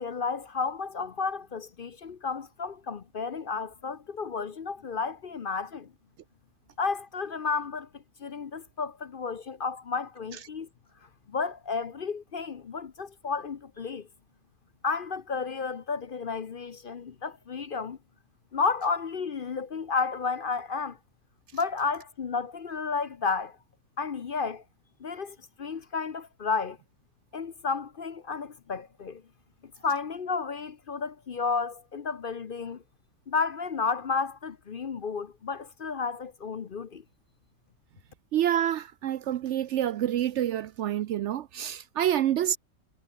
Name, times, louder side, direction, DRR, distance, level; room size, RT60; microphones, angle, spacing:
voice 1, 0.0-5.9 6.8-10.7 11.3-14.1 14.8-18.0 18.5-21.0 21.5-23.6 24.0-24.6 25.0-26.8 27.3-29.2 29.8-32.8 33.3-37.0, left 5 dB, 45° left, 0.8 m, -32 dB
voice 2, 38.3-42.6, right 11 dB, 65° right, 0.8 m, -27 dB
omnidirectional pair, 1.5 m